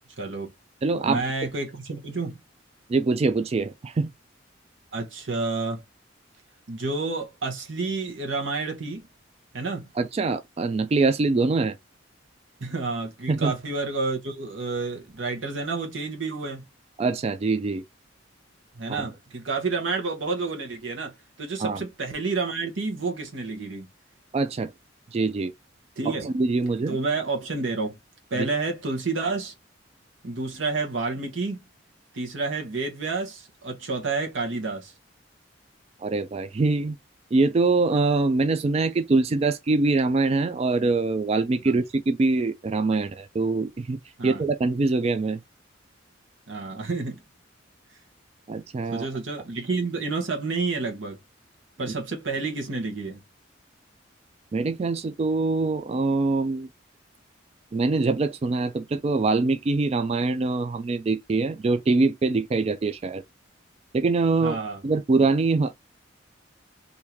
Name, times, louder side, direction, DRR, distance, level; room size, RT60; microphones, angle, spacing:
voice 1, 0.2-0.5 1.0-2.4 4.9-5.8 6.7-9.1 9.5-9.8 12.6-16.7 18.7-23.9 26.0-26.3 26.9-28.0 28.3-29.5 30.2-31.6 32.1-34.9 41.6-41.8 44.2-44.4 46.5-47.2 48.9-51.2 51.8-53.2 64.4-64.8, right 3 dB, 75° right, 1.0 m, -29 dB
voice 2, 0.8-1.2 2.9-4.1 10.0-11.8 13.3-13.5 17.0-17.8 18.9-19.1 21.6-21.8 24.3-24.7 25.1-25.5 26.2-27.0 28.3-28.5 36.0-37.0 37.3-45.4 48.5-49.1 54.5-56.7 57.7-63.2 63.9-64.6 64.8-65.7, right 3 dB, 30° right, 0.3 m, -24 dB
3.6 x 2.7 x 2.9 m
head